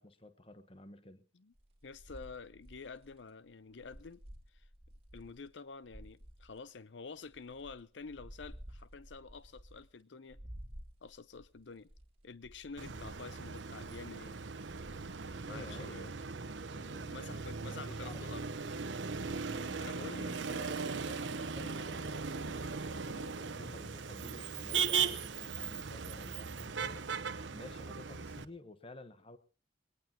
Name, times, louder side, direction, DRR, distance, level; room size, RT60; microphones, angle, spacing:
voice 1, 0.0-1.2 15.5-16.4 16.7-18.4 19.4-19.8 20.1-27.0 27.5-29.4, left 2 dB, 30° left, 1.1 m, -52 dB
sound 1, 1.5-5.5 5.8-6.6 7.2-10.0 10.3-15.8 16.2-16.7 17.1-19.9, equal, 30° right, 3.4 m, -54 dB
voice 2, 1.8-4.2 4.5-4.7 5.1-10.4 11.0-11.9 12.2-14.4 15.5-16.1 17.1-18.5 19.8-20.3, left 4 dB, 75° left, 0.7 m, -49 dB
Motor vehicle (road), 12.8-28.4, right 5 dB, 85° right, 1.0 m, -38 dB
21.5 x 18.5 x 2.9 m
head